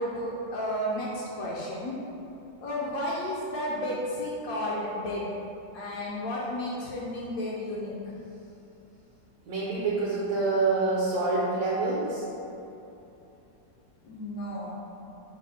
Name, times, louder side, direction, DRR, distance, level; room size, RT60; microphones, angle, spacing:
voice 1, 0.0-2.0 2.6-5.4 5.7-8.1 14.0-14.7, left 1 dB, 75° left, -5 dB, 0.8 m, -32 dB
voice 2, 9.5-12.2, right 3 dB, 70° right, -7 dB, 1.3 m, -26 dB
4.9 x 2.0 x 4.1 m, 2.9 s
omnidirectional pair, 2.1 m